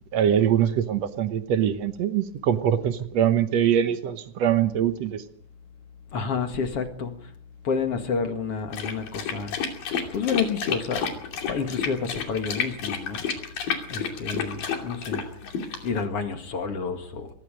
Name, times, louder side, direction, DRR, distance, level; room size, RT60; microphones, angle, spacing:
voice 1, 0.1-5.2, right 9 dB, 60° right, 10 dB, 2.0 m, -23 dB
voice 2, 6.1-7.1 7.6-9.6 10.1-11.1 11.5-13.2 13.9-15.2 15.8-17.3, left 5 dB, 50° left, 6 dB, 2.7 m, -29 dB
sound 1, 8.7-16.0, left 7 dB, 85° left, 4.5 m, -30 dB
24.5 x 21.0 x 5.2 m, 0.64 s
omnidirectional pair, 3.9 m